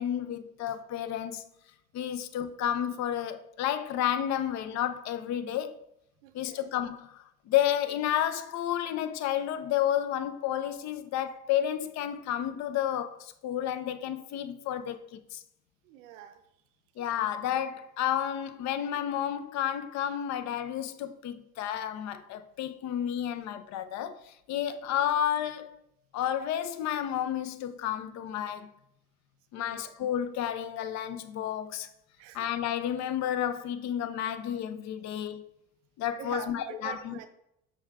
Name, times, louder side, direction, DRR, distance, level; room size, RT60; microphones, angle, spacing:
voice 1, 0.0-1.5 1.9-5.7 6.3-15.4 17.0-25.8 26.1-28.7 29.5-31.9 32.3-35.5 36.0-37.2, left 10 dB, 50° left, 0.4 m, -31 dB
voice 2, 6.2-6.7 15.8-16.4 17.5-17.6 29.6-29.9 32.2-32.4 36.2-37.3, right 10 dB, 80° right, 0.5 m, -44 dB
6.1 x 2.3 x 2.4 m
hypercardioid pair, 70°, 37 cm